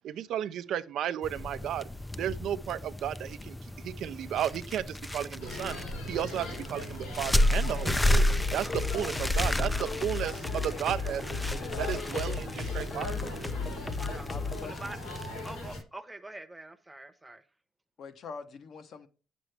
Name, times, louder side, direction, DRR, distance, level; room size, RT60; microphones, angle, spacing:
voice 1, 0.0-1.9 2.2-5.8 6.1-8.3 8.5-11.2 11.8-12.4 12.8-13.3, right 10 dB, 75° right, 0.5 m, -33 dB
sound 1, 1.2-15.8, left 1 dB, 10° left, 0.3 m, -32 dB
sound 2, 5.4-15.8, left 2 dB, 85° left, 3.5 m, -40 dB
sound 3, 7.9-14.7, left 4 dB, 25° left, 0.8 m, -36 dB
voice 2, 9.6-10.0 10.4-10.9 14.0-14.3 14.6-15.2 15.4-17.4, right 2 dB, 10° right, 0.8 m, -45 dB
voice 3, 11.5-12.6 14.3-15.2 18.0-19.1, left 5 dB, 55° left, 0.9 m, -44 dB
8.9 x 6.1 x 3.3 m
cardioid pair, 120°, 0 cm